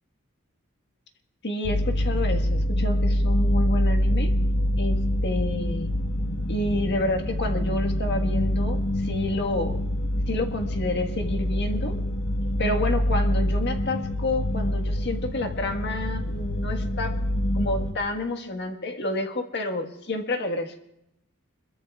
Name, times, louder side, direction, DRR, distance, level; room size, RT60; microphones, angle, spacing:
voice 1, 1.4-4.3 4.8-5.9 6.5-9.8 10.3-11.9 12.6-17.2 17.5-20.8, left 2 dB, 55° left, 5 dB, 1.6 m, -29 dB
sound 1, 1.6-17.9, left 1 dB, 70° left, 1.2 m, -25 dB
26.5 x 22.0 x 2.4 m, 0.81 s
head